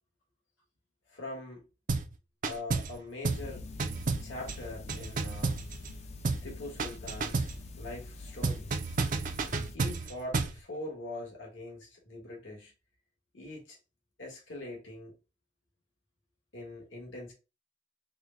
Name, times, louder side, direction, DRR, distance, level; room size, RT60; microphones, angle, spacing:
voice 1, 1.1-1.6 2.4-3.6 4.2-5.6 6.4-8.7 9.7-12.7 13.3-13.8 14.2-15.1 16.5-17.3, left 2 dB, 75° left, 1.5 m, -42 dB
sound 1, 1.9-2.1 2.4-3.0 3.2-3.5 3.8-6.0 6.2-6.5 6.8-7.6 8.4-10.6, right 3 dB, 45° right, 0.5 m, -31 dB
sound 2, 3.3-9.8, left 2 dB, 35° left, 0.5 m, -45 dB
4.7 x 2.2 x 3.8 m
head